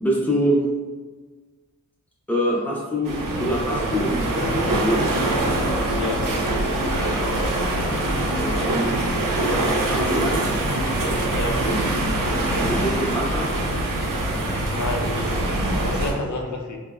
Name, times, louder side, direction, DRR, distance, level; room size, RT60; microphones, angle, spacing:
voice 1, 0.0-0.6 2.3-5.0 8.4-9.0 9.9-10.6 12.5-13.5, equal, 5° left, -4 dB, 0.7 m, -25 dB
sound 1, 3.0-16.1, right 1 dB, 90° right, 0.6 m, -23 dB
voice 2, 6.0-6.3 11.3-11.7 14.7-15.2 15.7-16.8, left 2 dB, 65° left, 1 dB, 0.5 m, -29 dB
3.8 x 2.1 x 2.4 m, 1.4 s
cardioid pair, 60°, 32 cm